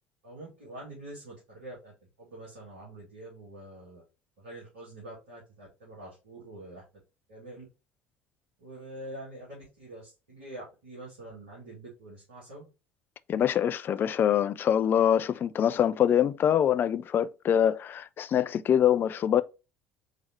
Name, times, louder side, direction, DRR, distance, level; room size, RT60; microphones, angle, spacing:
voice 1, 0.2-1.9 2.2-4.0 4.4-6.8 7.3-7.7 8.6-12.7, right 1 dB, 75° right, 1.9 m, -45 dB
voice 2, 13.3-19.4, left 9 dB, 35° left, 0.4 m, -24 dB
4.9 x 3.5 x 2.8 m
figure-of-eight pair, 60°, 6 cm